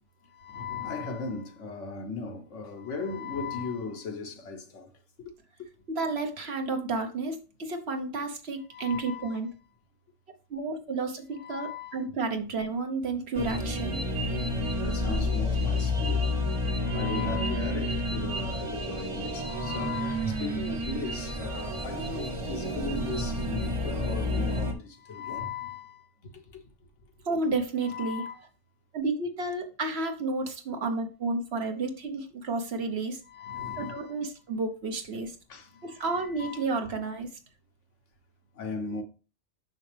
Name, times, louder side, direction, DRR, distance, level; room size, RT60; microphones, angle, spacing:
voice 1, 0.3-4.9 5.2-5.3 8.7-9.4 11.4-12.1 14.8-16.3 16.7-26.3 27.8-28.4 33.3-34.1 35.5-36.6 38.6-39.0, left 5 dB, 80° left, 1.4 m, -37 dB
voice 2, 5.9-9.5 10.5-14.0 27.2-28.5 28.9-33.2 33.8-35.3 35.8-37.3, right 3 dB, 60° right, 1.3 m, -31 dB
sound 1, 13.3-24.7, left 1 dB, 30° right, 0.9 m, -30 dB
6.2 x 6.1 x 3.4 m
omnidirectional pair, 1.2 m